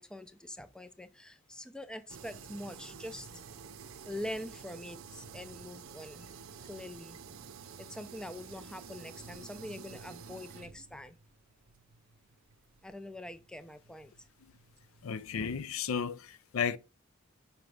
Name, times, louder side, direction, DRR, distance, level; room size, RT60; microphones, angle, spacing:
voice 1, 0.0-3.3 4.1-7.2 7.8-11.2 12.8-14.3, left 1 dB, 5° left, 0.4 m, -44 dB
sound 1, 2.1-15.5, right 6 dB, 75° right, 0.6 m, -50 dB
voice 2, 15.0-16.8, left 6 dB, 75° left, 0.5 m, -33 dB
5.9 x 5.1 x 3.3 m
head